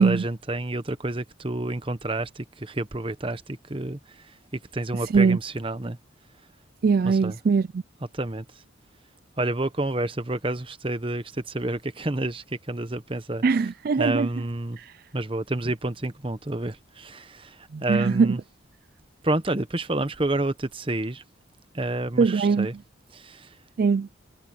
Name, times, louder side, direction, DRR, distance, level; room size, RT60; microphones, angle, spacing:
voice 1, 0.0-4.3 4.5-6.0 7.0-7.4 8.1-8.5 9.4-13.4 14.0-14.8 15.1-18.4 19.2-21.2 21.7-22.7 23.1-23.6, right 2 dB, 25° right, 1.0 m, -29 dB
voice 2, 5.0-5.4 6.8-7.8 13.4-14.3 14.8-15.0 17.7-18.4 22.2-22.7 23.8-24.1, right 5 dB, 45° right, 0.3 m, -21 dB
head